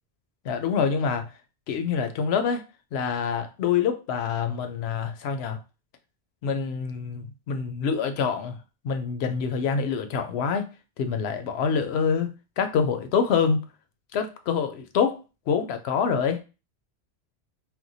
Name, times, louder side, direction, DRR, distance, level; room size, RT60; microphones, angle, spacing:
voice 1, 0.4-1.2 1.7-2.6 2.9-5.6 6.4-8.6 8.8-10.7 11.0-13.6 14.1-16.4, left 6 dB, 80° left, 0.8 m, -26 dB
4.3 x 2.2 x 2.6 m
omnidirectional pair, 1.1 m